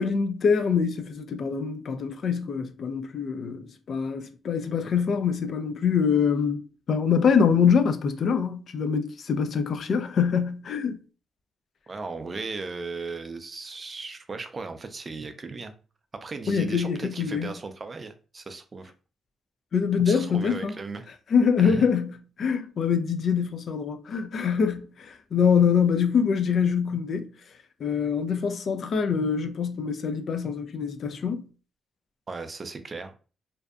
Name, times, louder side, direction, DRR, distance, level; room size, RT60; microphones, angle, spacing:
voice 1, 0.0-6.6 6.9-11.0 16.5-17.5 19.7-20.8 21.3-27.3 27.8-31.4, left 6 dB, 60° left, 0.3 m, -24 dB
voice 2, 11.9-15.7 16.1-18.9 20.1-21.1 21.6-21.9 32.3-33.2, right 3 dB, 35° right, 0.4 m, -36 dB
2.6 x 2.1 x 2.4 m
cardioid pair, 90°, 0 cm